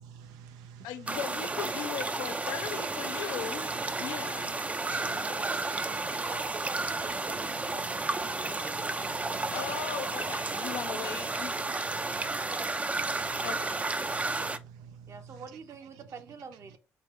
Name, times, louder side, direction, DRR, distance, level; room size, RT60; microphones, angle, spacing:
voice 1, 0.0-1.1 2.0-2.3 3.0-3.5 3.9-5.3 5.9-6.3 7.4-10.2 10.6-11.1 11.3-13.8 14.1-15.4 16.0-16.1, right 7 dB, 85° right, 0.4 m, -51 dB
voice 2, 0.8-3.7 4.0-4.6 9.5-11.6 13.4-13.8, left 10 dB, 80° left, 0.5 m, -38 dB
sound 1, 1.1-14.6, right 3 dB, 20° right, 0.4 m, -32 dB
voice 3, 5.0-8.7 12.1-12.6 15.1-16.8, right 5 dB, 50° right, 0.8 m, -47 dB
3.5 x 3.2 x 3.1 m
supercardioid pair, 55°, 7 cm